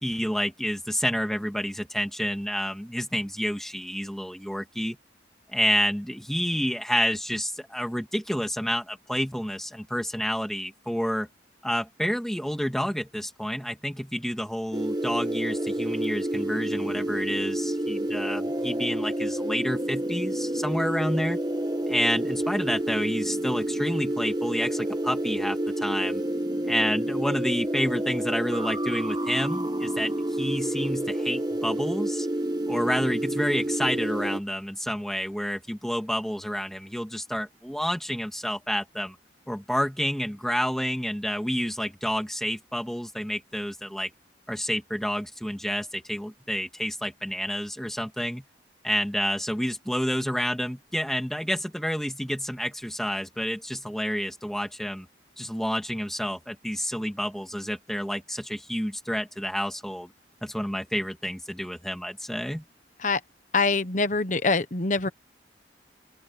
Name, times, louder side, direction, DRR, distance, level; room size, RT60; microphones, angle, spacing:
voice 1, 0.0-5.0 5.5-11.3 11.6-21.4 21.9-26.2 26.7-32.3 32.7-39.2 39.5-44.1 44.5-48.4 48.8-55.1 55.4-60.1 60.4-62.6, equal, ahead, 2.1 m, -29 dB
sound 1, 14.7-34.4, right 1 dB, 20° right, 1.0 m, -29 dB
voice 2, 63.5-65.1, left 3 dB, 45° left, 1.1 m, -24 dB
open air
head